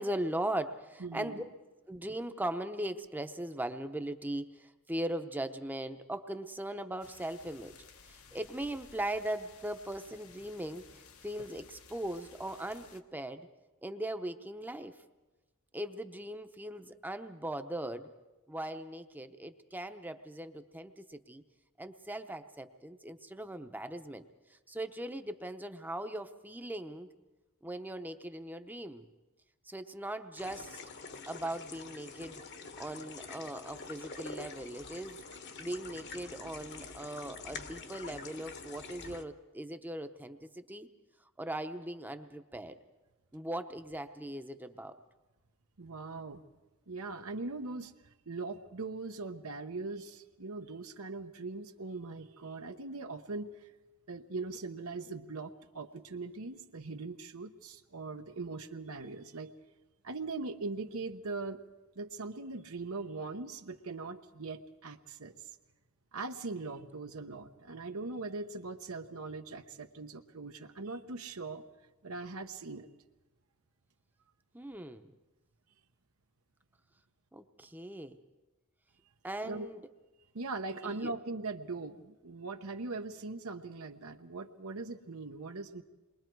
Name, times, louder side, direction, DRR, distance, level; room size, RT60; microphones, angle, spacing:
voice 1, 0.0-1.4 1.9-7.7 8.1-13.5 13.8-14.9 15.7-18.1 18.5-21.4 21.8-24.2 24.5-27.1 27.6-29.1 29.7-30.8 31.3-32.4 32.8-35.2 35.6-40.9 41.4-42.8 43.3-44.9 74.5-75.1 77.3-78.2 79.2-79.8 80.8-81.1, right 1 dB, 10° right, 8 dB, 0.8 m, -39 dB
voice 2, 1.0-1.4 45.8-46.4 46.9-47.9 48.3-53.7 54.1-59.5 60.0-61.6 62.0-65.4 66.1-71.6 72.0-72.9 79.4-79.7 80.3-85.8, right 3 dB, 80° right, 6 dB, 1.0 m, -41 dB
sound 1, 7.0-13.0, left 5 dB, 80° left, 1.3 m, -56 dB
sound 2, 30.4-39.2, left 4 dB, 50° left, 1.2 m, -46 dB
28.0 x 22.0 x 4.6 m, 1.1 s
head